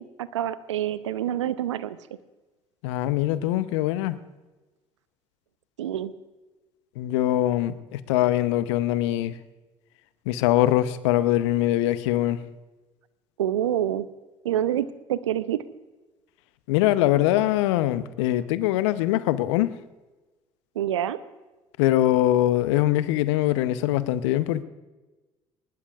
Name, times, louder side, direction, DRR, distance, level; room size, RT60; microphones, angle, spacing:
voice 1, 0.0-2.0 5.8-6.1 13.4-14.1 14.4-15.6 20.8-21.2, right 11 dB, 85° right, 15 dB, 0.7 m, -27 dB
voice 2, 2.8-4.2 7.0-9.4 10.3-12.4 16.7-19.7 21.8-24.6, left 14 dB, 75° left, 14 dB, 0.8 m, -23 dB
21.0 x 20.0 x 2.4 m, 1.2 s
figure-of-eight pair, 55°, 15 cm